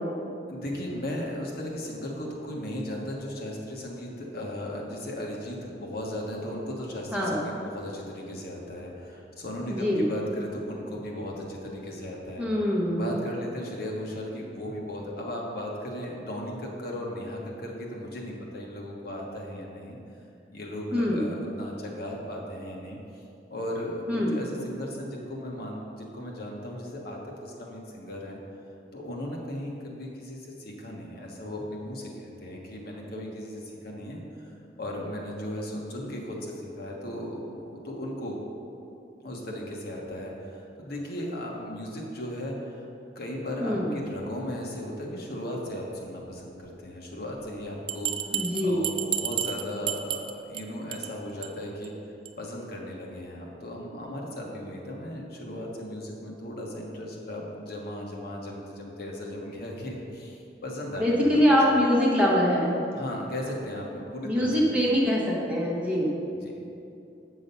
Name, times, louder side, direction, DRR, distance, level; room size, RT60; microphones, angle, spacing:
voice 1, 0.5-12.5 13.0-20.0 20.5-23.2 23.5-28.4 28.9-38.4 39.2-42.9 43.1-51.9 52.4-61.6 62.9-64.9 66.3-66.5, left 1 dB, 60° left, -2 dB, 1.3 m, -36 dB
voice 2, 7.1-7.4 9.7-10.0 12.4-13.0 20.9-21.2 24.1-24.4 43.6-43.9 48.3-48.8 61.0-62.7 64.2-66.1, equal, 5° right, -5 dB, 1.4 m, -23 dB
Bell, 47.9-50.6 50.9-51.1 51.4-51.5 51.8-51.9 52.2-52.3, right 9 dB, 25° right, 0.4 m, -31 dB
8.6 x 6.2 x 5.4 m, 2.7 s
head